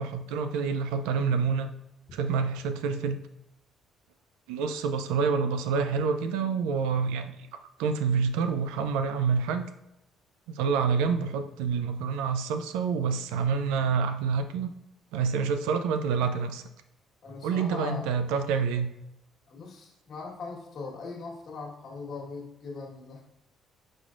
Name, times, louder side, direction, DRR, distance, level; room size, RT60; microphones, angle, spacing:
voice 1, 0.0-1.7 2.1-3.2 4.5-7.3 7.8-9.7 10.5-14.7 15.1-16.6 17.4-18.9, right 5 dB, 80° right, 8 dB, 0.4 m, -27 dB
voice 2, 17.2-18.1 19.5-23.2, left 4 dB, 55° left, 0 dB, 1.3 m, -40 dB
4.7 x 4.3 x 2.5 m, 0.86 s
hypercardioid pair, 60°, 0 cm